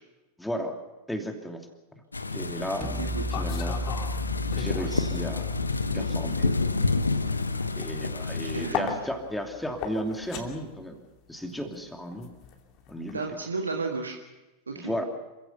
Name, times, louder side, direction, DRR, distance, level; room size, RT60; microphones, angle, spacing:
voice 1, 0.4-0.8 1.1-1.7 2.3-2.9 3.3-3.8 4.6-5.5 5.9-6.6 7.8-11.0 11.3-12.3 12.9-13.2 14.7-15.1, equal, 5° left, 4 dB, 2.8 m, -34 dB
sound 1, 2.1-8.7, left 3 dB, 80° left, 1.0 m, -29 dB
sound 2, 2.8-8.8, left 1 dB, 15° right, 3.1 m, -36 dB
sound 3, 3.0-5.1 5.4-13.2, left 7 dB, 40° left, 3.0 m, -38 dB
voice 2, 8.4-9.0 13.1-14.2 14.7-14.9, right 3 dB, 75° right, 3 dB, 1.7 m, -33 dB
27.5 x 16.0 x 6.8 m, 1.1 s
figure-of-eight pair, 90°, 0 cm